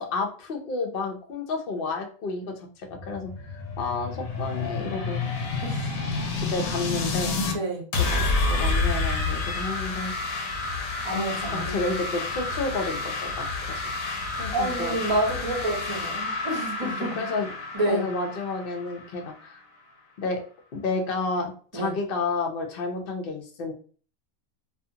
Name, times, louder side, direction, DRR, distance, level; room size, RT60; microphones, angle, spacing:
voice 1, 0.0-5.2 6.3-7.3 7.9-10.1 11.1-13.8 14.4-15.0 17.0-17.5 17.9-19.6 20.2-20.4 20.7-23.7, left 3 dB, 55° left, 3 dB, 0.7 m, -31 dB
sound 1, 2.9-7.6 7.9-19.5, left 3 dB, 75° left, 1.0 m, -29 dB
voice 2, 5.6-6.0 7.5-7.9 11.0-11.8 14.5-17.2 17.7-18.0 21.7-21.9, right 1 dB, 25° right, -1 dB, 0.6 m, -28 dB
2.4 x 2.4 x 2.7 m, 0.42 s
omnidirectional pair, 1.5 m